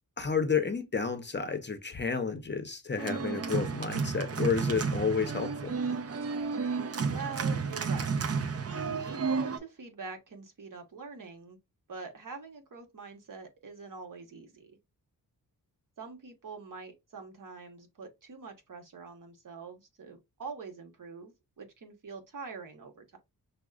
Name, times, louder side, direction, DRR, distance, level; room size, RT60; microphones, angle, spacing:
voice 1, 0.2-5.7, left 5 dB, 30° left, 0.6 m, -31 dB
Organ, 3.0-9.6, right 5 dB, 40° right, 0.5 m, -32 dB
voice 2, 7.1-8.1 8.8-11.6 11.9-14.8 16.0-23.2, right 5 dB, 55° right, 1.1 m, -44 dB
6.0 x 2.1 x 2.4 m
wide cardioid pair, 90°, 37 cm